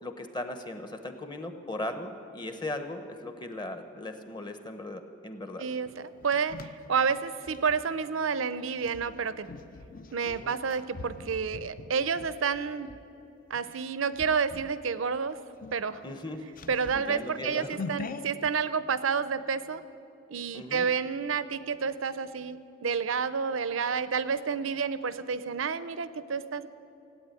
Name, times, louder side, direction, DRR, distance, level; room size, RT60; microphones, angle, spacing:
voice 1, 0.0-5.7 10.2-10.6 16.0-16.5 16.9-17.8 20.5-20.9, left 1 dB, 20° left, 7 dB, 0.9 m, -38 dB
voice 2, 5.6-9.5 10.1-12.9 13.5-15.4 15.7-16.0 16.7-19.8 20.3-26.7, right 6 dB, 80° right, 14 dB, 0.6 m, -30 dB
sound 1, 5.9-7.8 8.8-13.0 13.5-13.8 14.1-14.8 15.1-15.2 15.5-18.5, left 3 dB, 45° left, 0.5 m, -43 dB
16.5 x 8.9 x 9.0 m, 2.8 s
head